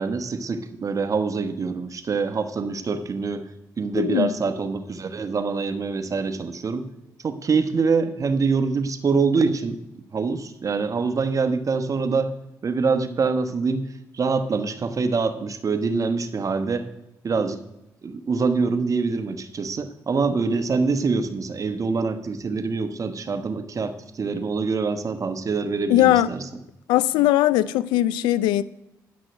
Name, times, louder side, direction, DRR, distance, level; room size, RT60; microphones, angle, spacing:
voice 1, 0.0-3.4 3.8-6.9 7.2-9.8 10.1-12.3 12.6-13.9 14.1-16.9 17.2-17.6 18.0-26.4, right 4 dB, 45° right, 1.1 m, -25 dB
voice 2, 3.9-4.3 25.9-26.3 26.9-28.6, left 14 dB, 90° left, 0.4 m, -19 dB
10.0 x 6.2 x 6.3 m
supercardioid pair, 55°, 8 cm